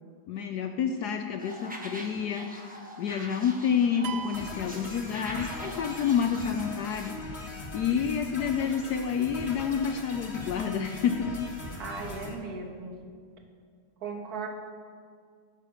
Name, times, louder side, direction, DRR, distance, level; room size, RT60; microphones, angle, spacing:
voice 1, 0.3-7.3 7.7-11.3, left 7 dB, 70° left, 6 dB, 1.0 m, -29 dB
sound 1, 1.4-7.1, equal, 10° right, 0.6 m, -44 dB
sound 2, 4.0-5.7, right 7 dB, 85° right, 0.7 m, -41 dB
sound 3, 4.3-12.3, left 2 dB, 35° left, 1.6 m, -41 dB
voice 2, 11.8-13.0 14.0-14.5, right 4 dB, 50° right, 2 dB, 1.8 m, -37 dB
18.0 x 6.7 x 5.0 m, 2.1 s
omnidirectional pair, 2.2 m